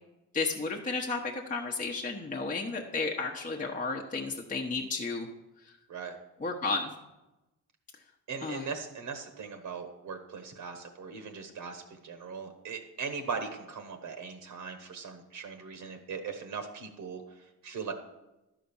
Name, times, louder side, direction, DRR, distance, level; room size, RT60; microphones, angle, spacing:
voice 1, 0.3-5.3 6.4-6.9 8.4-8.6, left 3 dB, 25° left, 0 dB, 1.0 m, -32 dB
voice 2, 8.3-17.9, right 5 dB, 65° right, 6 dB, 1.2 m, -39 dB
12.0 x 5.0 x 7.1 m, 0.99 s
cardioid pair, 120°, 33 cm